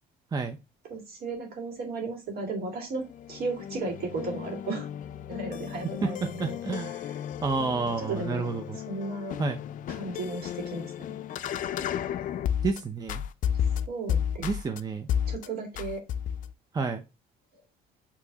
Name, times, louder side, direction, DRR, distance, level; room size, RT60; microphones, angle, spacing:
voice 1, 0.9-3.0 3.3-4.9 5.3-6.6 7.0-7.1 7.7-8.5 8.9-9.4 9.9-10.9 11.7-11.9 13.9-14.8 15.3-16.0, right 3 dB, 65° right, 2.0 m, -35 dB
sound 1, 3.0-12.8 13.1-14.8 15.1-15.5 15.8-16.5, left 9 dB, 50° left, 0.4 m, -33 dB
voice 2, 6.0-7.0 7.4-8.8 9.4-9.6 12.6-13.2 14.4-15.1 16.7-17.0, right 4 dB, 20° right, 0.6 m, -30 dB
5.9 x 3.1 x 2.8 m
cardioid pair, 110°, 17 cm